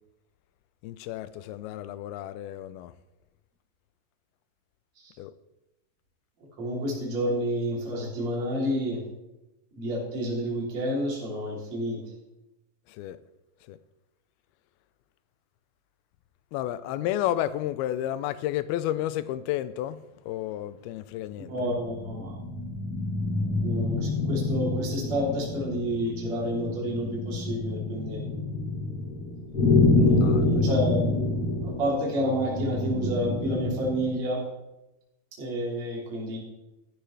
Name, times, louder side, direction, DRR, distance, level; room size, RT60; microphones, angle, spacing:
voice 1, 0.8-2.9 5.2-5.3 12.9-13.2 13.7-13.8 16.5-21.5 30.2-30.5, left 13 dB, 80° left, 2.4 m, -31 dB
voice 2, 6.6-9.0 9.8-12.0 21.5-22.3 23.6-28.2 29.9-31.1 31.6-34.4 35.4-36.4, equal, 45° right, 4.3 m, -29 dB
sound 1, 21.5-34.1, left 2 dB, 50° left, 1.0 m, -27 dB
14.5 x 12.0 x 3.3 m
omnidirectional pair, 4.6 m